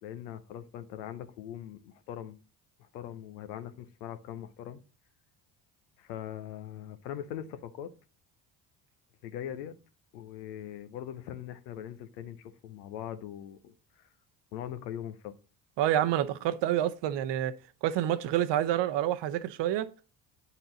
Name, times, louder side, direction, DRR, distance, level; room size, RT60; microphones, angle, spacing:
voice 1, 0.0-2.4 2.8-4.8 6.0-7.9 9.2-9.7 10.1-14.1 14.5-15.4, left 10 dB, 85° left, 0.8 m, -41 dB
voice 2, 15.8-17.5 17.8-19.9, right 12 dB, 60° right, 0.8 m, -28 dB
9.0 x 4.2 x 3.9 m
hypercardioid pair, 60°, 50 cm